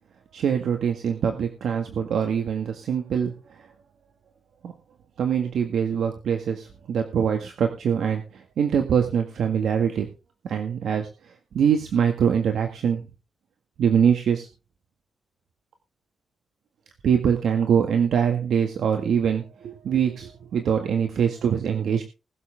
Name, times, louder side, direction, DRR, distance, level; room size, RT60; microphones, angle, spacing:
voice 1, 0.3-3.3 3.6-3.7 4.6-4.7 5.2-10.1 10.4-13.0 13.8-14.5 17.0-22.0, right 7 dB, 80° right, 4 dB, 1.8 m, -23 dB
21.0 x 7.4 x 3.6 m, 0.30 s
cardioid pair, 120°, 0 cm